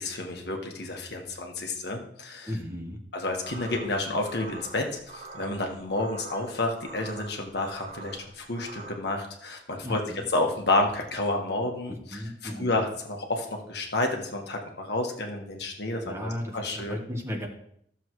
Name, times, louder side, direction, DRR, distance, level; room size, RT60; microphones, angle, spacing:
voice 1, 0.0-2.5 3.1-10.0 10.3-17.0, left 2 dB, 65° left, 2 dB, 1.5 m, -30 dB
voice 2, 2.5-3.0 9.8-10.2 11.9-12.8 16.0-17.5, equal, 15° right, 1 dB, 1.3 m, -35 dB
sound 1, 3.4-8.9, right 3 dB, 45° right, 1.0 m, -45 dB
14.0 x 7.1 x 3.1 m, 0.70 s
head